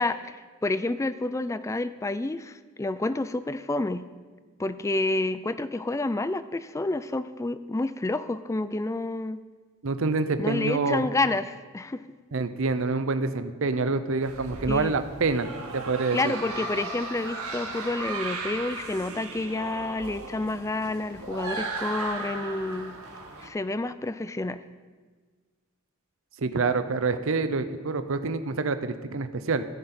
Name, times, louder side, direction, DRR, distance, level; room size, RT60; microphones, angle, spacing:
voice 1, 0.0-4.0 4.6-9.4 10.4-12.0 14.7-15.0 16.1-23.0 23.4-24.6, left 2 dB, 15° left, 13 dB, 0.3 m, -29 dB
voice 2, 9.8-11.0 12.3-16.3 26.4-29.7, right 3 dB, 60° right, 10 dB, 0.6 m, -27 dB
sound 1, 14.2-23.5, right 3 dB, 80° right, 1.9 m, -36 dB
14.0 x 10.0 x 4.3 m, 1.4 s
head